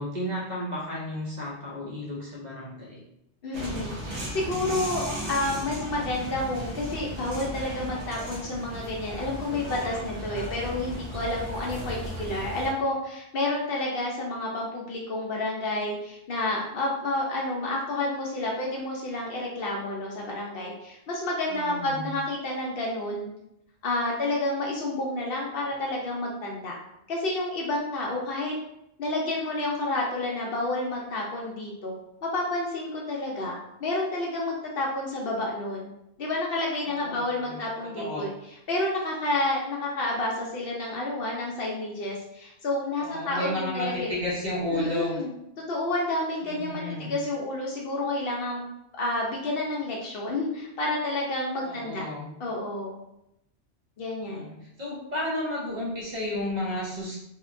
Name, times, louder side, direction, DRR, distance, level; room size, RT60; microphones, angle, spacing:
voice 1, 0.0-3.0 10.6-11.0 21.5-22.1 36.9-38.3 43.0-45.2 46.4-47.1 51.6-52.3 54.2-57.2, left 1 dB, 45° right, -5 dB, 0.7 m, -33 dB
voice 2, 3.4-23.3 23.8-26.7 27.1-28.5 29.0-32.0 32.2-35.9 36.2-38.3 38.7-44.1 44.7-45.3 45.7-48.6 48.9-52.0 52.4-53.0 54.0-54.5, left 2 dB, 65° left, -2 dB, 0.7 m, -30 dB
sound 1, 3.5-12.7, equal, 80° right, 1.0 m, -36 dB
2.8 x 2.1 x 2.4 m, 0.83 s
omnidirectional pair, 1.2 m